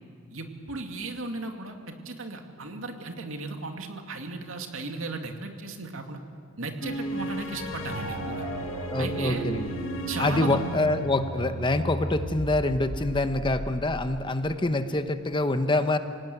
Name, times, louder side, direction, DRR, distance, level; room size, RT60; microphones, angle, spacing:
voice 1, 0.3-6.2 6.6-8.5 9.0-9.4 10.1-10.6, right 3 dB, 85° right, 4 dB, 2.4 m, -36 dB
sound 1, 6.8-12.0, equal, 70° left, 2.3 m, -36 dB
sound 2, 7.9-14.5, right 1 dB, 65° right, 7.4 m, -36 dB
voice 2, 8.9-9.7 10.2-16.0, left 2 dB, 25° left, 9 dB, 1.0 m, -26 dB
26.5 x 18.0 x 9.3 m, 2.3 s
head